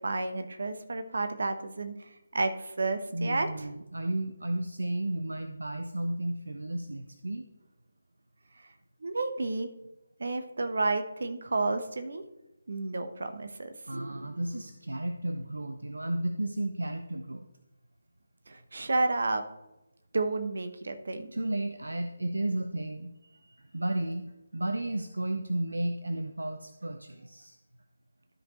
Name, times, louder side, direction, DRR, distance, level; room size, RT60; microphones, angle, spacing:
voice 1, 0.0-3.7 8.6-8.7 9.0-9.7 10.2-12.2 12.7-13.7 18.5-19.4 20.1-21.3, right 3 dB, 60° right, 8 dB, 1.0 m, -31 dB
voice 2, 3.1-7.4 13.9-17.4 21.3-27.6, right 1 dB, 75° right, 7 dB, 0.6 m, -33 dB
12.5 x 5.2 x 3.1 m, 0.95 s
figure-of-eight pair, 150°, 0 cm